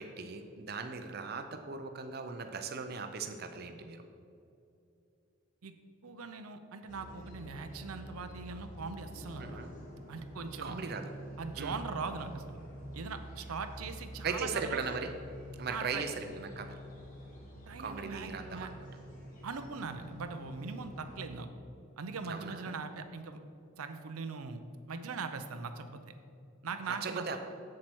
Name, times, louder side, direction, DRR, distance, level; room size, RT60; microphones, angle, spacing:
voice 1, 0.0-4.0 9.4-9.7 10.6-11.1 11.6-11.8 14.2-15.1 15.6-16.7 17.8-18.7 22.2-22.8 27.0-27.4, right 5 dB, 45° right, 6 dB, 0.5 m, -38 dB
voice 2, 6.0-9.6 10.1-10.8 11.4-12.6 12.9-14.8 15.7-16.0 17.7-18.7 19.4-21.5 22.0-23.4 23.8-24.6 24.9-26.1 26.6-27.4, right 4 dB, 90° right, 8 dB, 0.6 m, -41 dB
sound 1, 6.9-21.3, right 1 dB, 35° left, 1.7 m, -47 dB
7.5 x 7.4 x 4.6 m, 2.7 s
head